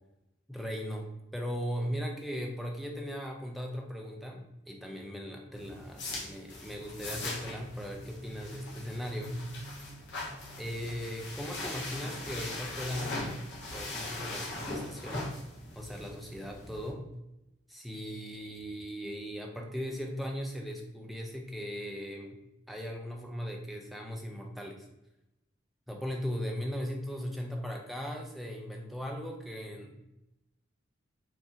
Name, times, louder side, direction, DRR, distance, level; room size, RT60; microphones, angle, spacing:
voice 1, 0.5-1.1 1.3-4.4 4.7-9.4 9.8-9.9 10.6-15.3 15.8-17.0 17.7-22.4 22.7-24.9 25.9-30.1, equal, ahead, 1 dB, 0.4 m, -38 dB
sound 1, 5.5-16.9, left 2 dB, 60° left, 1.0 m, -40 dB
4.8 x 2.6 x 2.6 m, 0.91 s
head